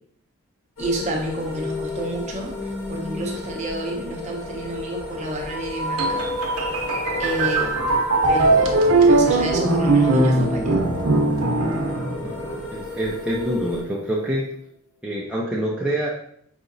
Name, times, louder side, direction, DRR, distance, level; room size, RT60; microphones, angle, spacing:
sound 1, 0.8-13.8, left 3 dB, 70° left, 1.1 m, -36 dB
voice 1, 0.8-2.5 2.9-6.2 7.2-7.8 8.3-10.8, right 1 dB, 30° right, -1 dB, 0.7 m, -30 dB
sound 2, 1.5-14.3, equal, 35° left, 0.8 m, -34 dB
sound 3, 6.0-12.7, right 2 dB, 90° right, 0.7 m, -20 dB
voice 2, 12.7-14.5 15.0-16.1, right 1 dB, 5° right, -6 dB, 0.4 m, -26 dB
5.0 x 2.8 x 2.6 m, 0.66 s
head